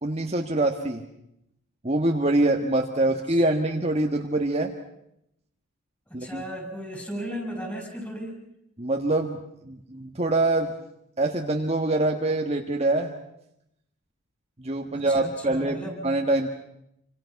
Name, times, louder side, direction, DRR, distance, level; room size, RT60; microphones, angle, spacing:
voice 1, 0.0-1.0 1.8-4.7 6.1-6.4 8.8-9.4 9.6-10.7 11.2-13.1 14.6-16.5, right 2 dB, 30° right, 3 dB, 1.6 m, -24 dB
voice 2, 6.1-8.4 14.9-16.0, equal, 10° left, 2 dB, 6.5 m, -35 dB
28.0 x 26.0 x 5.9 m, 0.79 s
head